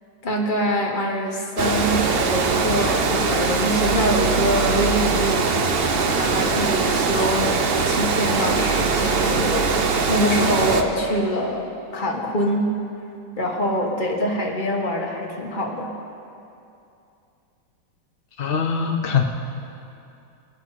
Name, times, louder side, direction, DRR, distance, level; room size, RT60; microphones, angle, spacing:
voice 1, 0.2-5.5 5.9-7.5 7.8-12.7 13.4-15.9, equal, 25° left, -1 dB, 1.5 m, -24 dB
Water, 1.6-10.8, right 4 dB, 75° right, 0.5 m, -21 dB
voice 2, 18.4-19.2, left 6 dB, 75° left, 3 dB, 0.5 m, -22 dB
20.5 x 11.0 x 4.1 m, 2.6 s
omnidirectional pair, 2.1 m